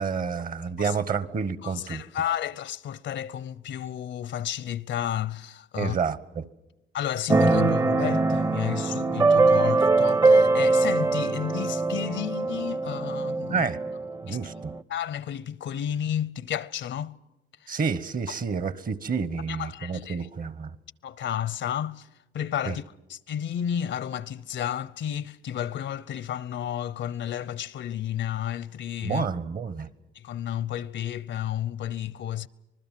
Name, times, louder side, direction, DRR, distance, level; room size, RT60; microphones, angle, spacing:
voice 1, 0.0-2.0 5.8-6.4 13.5-13.8 14.2-14.7 17.7-20.7 22.7-22.8 29.0-29.9, right 5 dB, 45° right, 1.2 m, -29 dB
voice 2, 1.6-6.0 6.9-13.7 14.3-14.4 14.9-17.2 17.6-17.8 19.5-20.3 21.0-22.1 22.3-22.8 23.1-29.3 30.1-32.5, left 10 dB, 70° left, 0.8 m, -32 dB
Keyboard (musical), 7.3-14.8, right 3 dB, 20° right, 0.7 m, -22 dB
26.0 x 20.0 x 7.5 m
cardioid pair, 90°, 20 cm